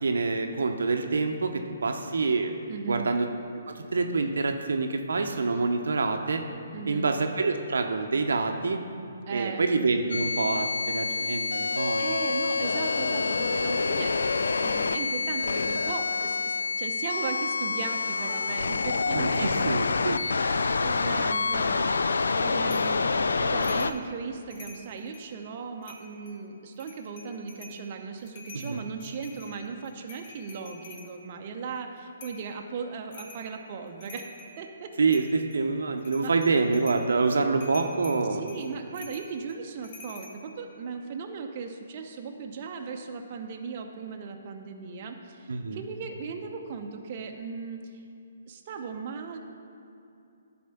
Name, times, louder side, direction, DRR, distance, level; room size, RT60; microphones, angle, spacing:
voice 1, 0.0-2.5 2.9-3.3 3.7-6.4 6.9-8.8 9.3-12.0 19.1-20.2 28.5-28.8 35.0-38.4 45.5-45.8, right 4 dB, 80° right, 5 dB, 0.7 m, -26 dB
voice 2, 2.7-3.1 6.7-7.2 9.3-9.6 11.7-19.5 20.8-34.3 34.6-34.9 36.2-36.3 38.3-48.0 48.5-49.4, right 5 dB, 40° right, 3 dB, 0.6 m, -37 dB
sound 1, 10.1-23.9, left 4 dB, 85° left, 0.3 m, -27 dB
sound 2, 22.7-23.0 23.6-24.0 24.4-25.3 25.8-26.4 26.8-27.8 28.2-31.1 32.2-32.5 33.1-33.5 33.9-34.6 35.1-35.6 36.0-37.1 37.6-40.3, left 3 dB, 45° left, 1.2 m, -47 dB
11.0 x 4.3 x 5.8 m, 2.6 s
hypercardioid pair, 150°, 0 cm